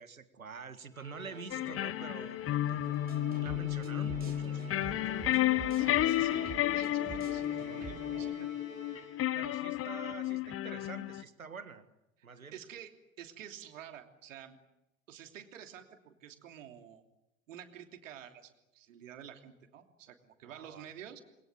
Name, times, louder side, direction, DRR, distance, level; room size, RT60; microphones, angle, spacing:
voice 1, 0.0-2.9 3.4-5.3 9.3-11.9 12.2-12.6 20.4-20.9, right 5 dB, 85° right, 12 dB, 1.8 m, -47 dB
Musical instrument, 0.9-9.4, left 3 dB, 80° left, 7.9 m, -50 dB
sound 1, 1.5-11.2, left 13 dB, 35° left, 1.1 m, -32 dB
sound 2, 2.8-8.3, right 6 dB, 20° right, 3.9 m, -47 dB
voice 2, 5.8-8.5 12.5-12.9 13.2-14.6 15.1-17.0 17.5-21.2, right 9 dB, 70° right, 5 dB, 3.1 m, -50 dB
29.5 x 22.0 x 7.8 m, 0.89 s
figure-of-eight pair, 70°, 40 cm